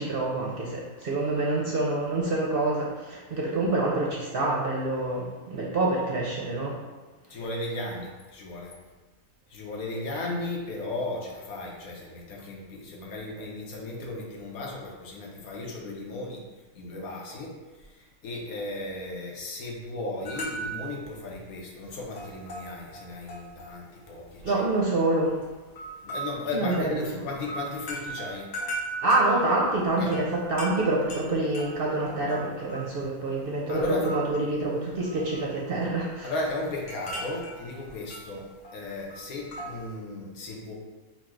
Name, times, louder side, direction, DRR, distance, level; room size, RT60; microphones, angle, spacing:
voice 1, 0.0-6.8 10.3-10.4 24.4-25.3 26.5-27.3 29.0-36.3, right 2 dB, 55° right, -3 dB, 0.7 m, -27 dB
voice 2, 7.3-8.7 9.5-16.4 16.7-24.6 26.0-28.5 30.0-30.1 33.7-34.1 36.2-40.7, left 2 dB, 80° left, -1 dB, 1.3 m, -35 dB
sound 1, 20.3-21.0 21.3-21.5 21.8-23.7 24.0-24.8 25.4-33.4 33.7-34.6 34.9-35.5 35.8-39.9, right 2 dB, 60° left, 1.2 m, -38 dB
4.4 x 2.3 x 4.4 m, 1.2 s
omnidirectional pair, 1.5 m